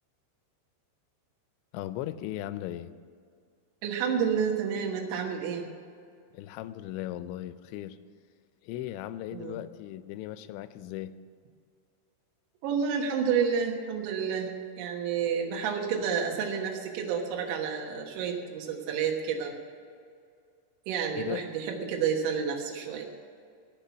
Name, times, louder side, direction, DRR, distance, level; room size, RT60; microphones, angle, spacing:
voice 1, 1.7-2.9 6.3-8.0 8.6-11.1 21.1-21.4, left 13 dB, 80° left, 13 dB, 2.7 m, -37 dB
voice 2, 3.8-5.6 9.3-9.6 12.6-19.5 20.9-23.0, right 7 dB, 80° right, 1 dB, 3.7 m, -30 dB
17.5 x 6.0 x 9.5 m, 2.3 s
omnidirectional pair, 5.5 m